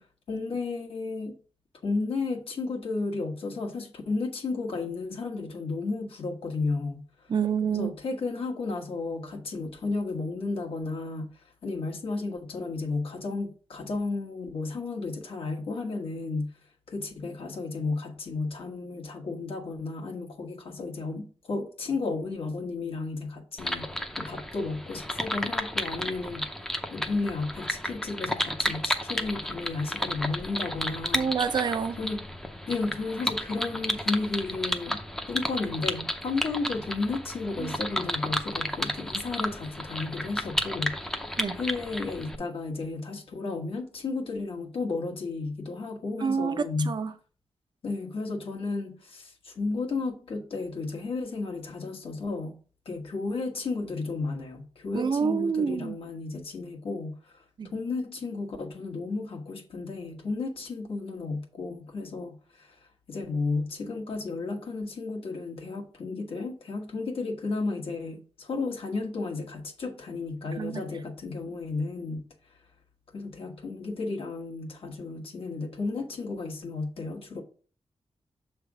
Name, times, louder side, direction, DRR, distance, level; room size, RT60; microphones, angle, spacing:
voice 1, 0.3-1.4 1.8-7.3 7.7-16.5 16.9-23.9 24.2-26.5 26.9-31.3 32.0-32.3 32.7-35.0 35.3-41.2 41.6-47.0 47.8-52.6 52.8-57.4 57.7-62.8 63.1-72.3 73.1-77.4, left 3 dB, 65° left, 1.3 m, -33 dB
voice 2, 7.3-7.9 31.1-32.0 37.6-37.7 41.4-41.6 46.2-47.1 54.9-56.0 57.6-57.7 70.6-70.8, right 6 dB, 45° right, 0.6 m, -28 dB
sound 1, 23.6-42.4, equal, 5° left, 0.6 m, -32 dB
7.1 x 3.4 x 4.8 m
wide cardioid pair, 160°, 10 cm